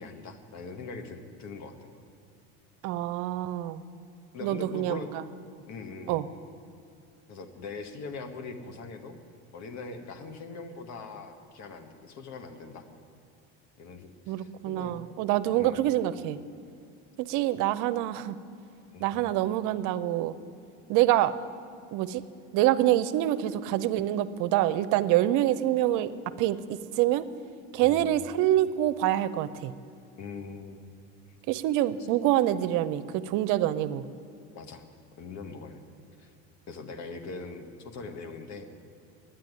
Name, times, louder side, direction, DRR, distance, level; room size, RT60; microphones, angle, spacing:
voice 1, 0.0-2.0 4.3-5.2 5.7-6.3 7.3-9.2 9.5-12.9 13.8-14.9 15.5-15.8 18.9-19.3 27.8-28.2 30.2-30.9 34.5-34.8 35.2-35.8 36.2-36.3 36.7-38.7, left 4 dB, 55° left, 7 dB, 1.5 m, -41 dB
voice 2, 2.8-3.8 4.4-5.0 6.1-6.2 14.3-16.4 17.3-18.4 19.0-20.3 20.9-21.3 21.9-22.2 22.5-26.1 26.4-27.3 27.7-29.7 31.5-34.0, right 13 dB, 70° right, 14 dB, 0.6 m, -26 dB
9.7 x 9.1 x 9.7 m, 2.5 s
supercardioid pair, 95°, 32 cm